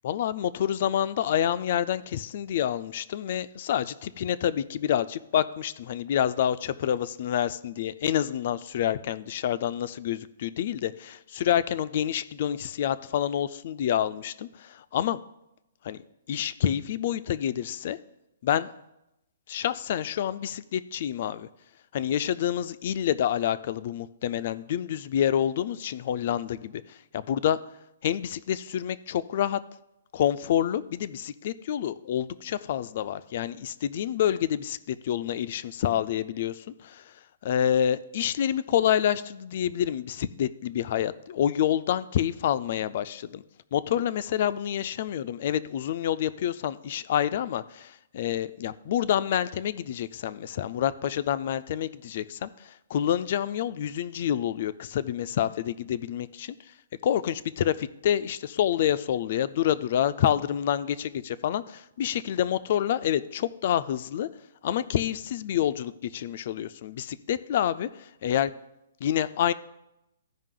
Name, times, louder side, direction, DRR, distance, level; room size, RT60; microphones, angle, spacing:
voice 1, 0.0-15.2 15.8-16.0 16.3-18.0 18.4-18.7 19.5-21.5 21.9-27.6 28.0-29.6 30.1-37.0 37.4-43.4 43.7-56.5 57.0-64.3 64.6-68.5 69.0-69.5, left 10 dB, 45° left, 14 dB, 0.3 m, -28 dB
14.0 x 5.3 x 3.7 m, 0.88 s
hypercardioid pair, 165°, 0 cm